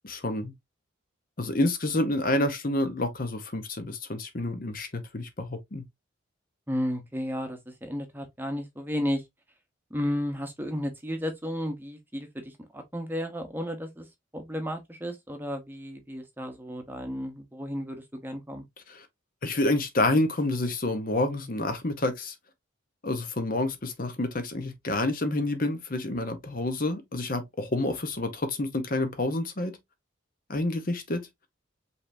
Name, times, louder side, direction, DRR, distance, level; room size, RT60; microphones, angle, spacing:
voice 1, 0.0-0.5 1.4-5.8 18.9-19.1 19.4-22.3 23.0-29.8 30.5-31.3, left 2 dB, 45° left, 0.9 m, -28 dB
voice 2, 6.7-9.2 9.9-14.1 14.3-18.6, equal, 10° right, 0.9 m, -33 dB
5.5 x 3.4 x 2.6 m
head